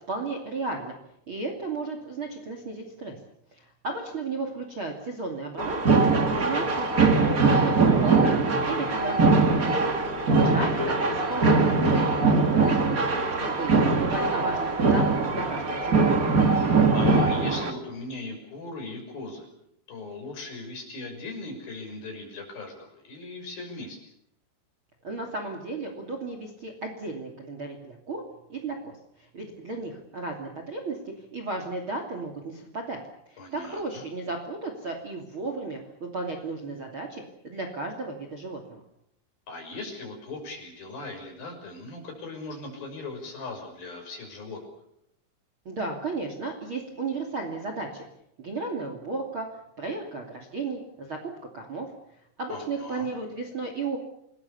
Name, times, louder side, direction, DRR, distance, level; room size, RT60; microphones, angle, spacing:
voice 1, 0.1-1.0 1.3-3.2 3.5-6.9 7.3-8.4 8.7-9.7 10.4-13.0 13.4-16.3 25.0-28.2 28.5-33.0 33.3-38.8 45.6-48.1 48.4-49.5 49.8-51.9 52.4-54.0, right 3 dB, 30° right, 4 dB, 2.8 m, -34 dB
sound 1, 5.6-17.7, right 3 dB, 60° right, 0.9 m, -22 dB
voice 2, 16.5-19.5 19.9-24.0 33.4-33.8 39.5-44.6 52.5-53.1, left 3 dB, 50° left, 3 dB, 7.8 m, -38 dB
29.0 x 21.0 x 7.1 m, 0.76 s
omnidirectional pair, 5.5 m